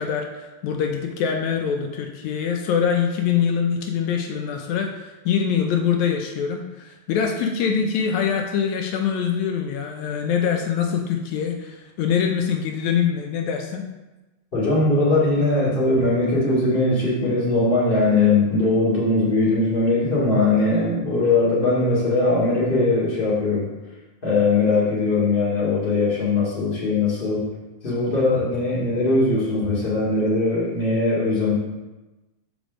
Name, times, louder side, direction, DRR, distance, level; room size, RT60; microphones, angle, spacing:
voice 1, 0.0-13.8, left 7 dB, 80° left, 3 dB, 2.0 m, -24 dB
voice 2, 14.5-23.7 24.2-27.5 27.8-31.5, left 2 dB, 20° left, -7 dB, 2.1 m, -20 dB
5.2 x 5.1 x 6.2 m, 1.1 s
omnidirectional pair, 3.3 m